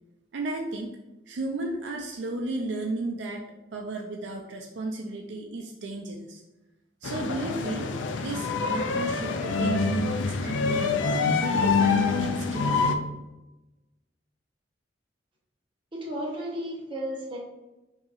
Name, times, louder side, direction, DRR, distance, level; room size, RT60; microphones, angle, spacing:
voice 1, 0.3-0.9 1.3-3.4 3.7-6.4 7.0-11.1 11.4-13.0, right 2 dB, 70° right, 1 dB, 0.4 m, -34 dB
sound 1, 7.0-13.0, left 4 dB, 80° left, 0.4 m, -26 dB
voice 2, 15.9-17.4, equal, 25° right, -3 dB, 1.0 m, -33 dB
5.5 x 2.8 x 2.5 m, 1.0 s
head